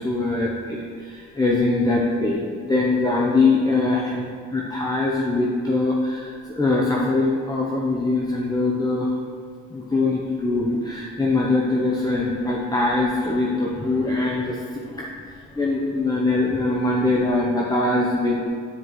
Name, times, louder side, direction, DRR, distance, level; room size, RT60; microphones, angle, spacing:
voice 1, 0.0-9.2 9.7-18.5, left 2 dB, 15° left, -3 dB, 0.8 m, -22 dB
9.7 x 4.7 x 3.1 m, 2.1 s
cardioid pair, 90°, 30 cm